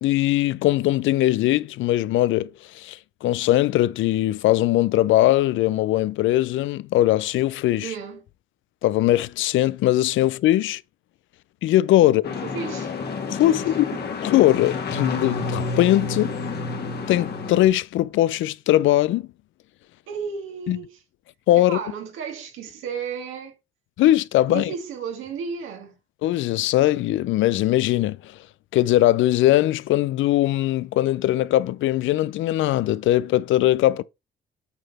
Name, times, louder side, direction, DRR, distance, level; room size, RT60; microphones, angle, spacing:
voice 1, 0.0-2.5 2.7-7.9 8.8-10.8 11.6-12.2 13.3-13.9 14.2-16.3 17.1-19.3 20.7-20.8 21.5-21.8 24.0-24.7 26.2-28.3 28.7-34.0, left 14 dB, 75° left, 0.4 m, -20 dB
voice 2, 7.8-8.2 12.0-12.1 12.4-12.9 13.5-14.1 20.1-21.0 21.5-23.5 24.5-26.0, right 6 dB, 85° right, 1.9 m, -33 dB
sound 1, 12.2-17.7, left 4 dB, 55° left, 2.0 m, -29 dB
8.2 x 3.9 x 4.2 m
cardioid pair, 90°, 20 cm